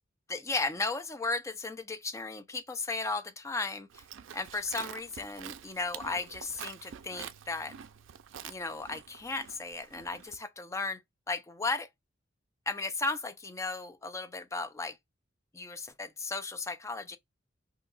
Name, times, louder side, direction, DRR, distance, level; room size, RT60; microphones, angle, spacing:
voice 1, 0.3-4.0 4.3-7.7 8.4-11.0 11.3-11.9 12.7-15.0 15.5-17.2, left 3 dB, 15° left, 0.4 m, -35 dB
Livestock farm animals working animals, 3.9-10.4, right 9 dB, 70° right, 0.3 m, -47 dB
2.7 x 2.3 x 3.8 m
head